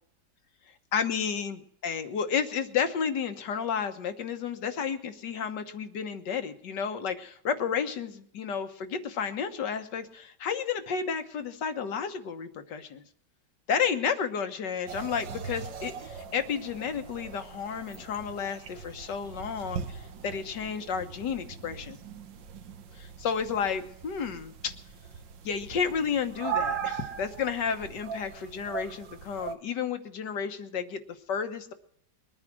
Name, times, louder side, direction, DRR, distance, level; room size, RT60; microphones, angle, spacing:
voice 1, 0.9-13.0 13.7-22.0 23.0-24.7 25.4-31.0 31.3-31.7, left 6 dB, 70° left, 8 dB, 1.8 m, -32 dB
sound 1, 14.9-29.6, right 7 dB, 80° right, 1.8 m, -39 dB
21.5 x 9.8 x 6.2 m, 0.69 s
omnidirectional pair, 2.0 m